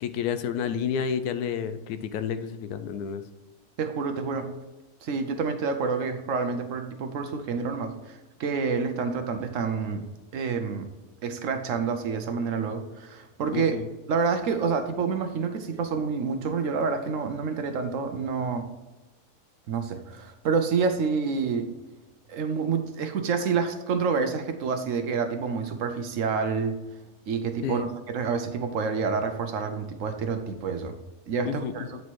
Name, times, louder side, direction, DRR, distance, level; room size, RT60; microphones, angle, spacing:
voice 1, 0.0-3.2 13.5-13.9 27.6-27.9 31.4-31.9, left 7 dB, 80° left, 11 dB, 1.1 m, -30 dB
voice 2, 3.8-4.5 5.0-10.0 10.3-10.9 11.2-13.8 14.1-18.7 19.7-21.7 22.3-26.7 27.3-30.9 31.3-32.0, right 5 dB, 65° right, 7 dB, 0.9 m, -28 dB
9.3 x 4.2 x 4.5 m, 1.1 s
omnidirectional pair, 1.6 m